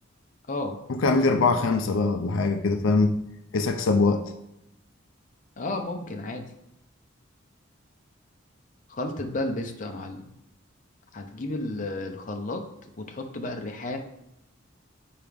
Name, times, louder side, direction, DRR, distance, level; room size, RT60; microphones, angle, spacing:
voice 1, 0.9-3.2 3.5-4.3, left 3 dB, 85° left, 7 dB, 0.5 m, -22 dB
voice 2, 5.6-6.5 8.9-10.3 11.1-12.6 13.0-14.0, left 2 dB, 40° left, 3 dB, 0.7 m, -32 dB
7.5 x 4.7 x 3.5 m, 0.84 s
head